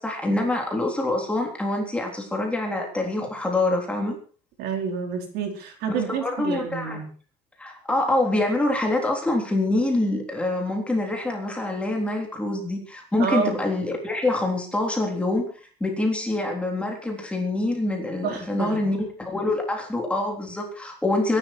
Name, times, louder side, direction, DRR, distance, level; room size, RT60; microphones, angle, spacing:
voice 1, 0.0-4.2 5.9-7.0 7.6-21.4, left 2 dB, 5° left, 1 dB, 3.6 m, -25 dB
voice 2, 4.6-7.1 13.2-13.6 18.2-18.9, right 6 dB, 55° right, 4 dB, 4.6 m, -28 dB
24.5 x 11.5 x 4.6 m, 0.39 s
cardioid pair, 180°, 20 cm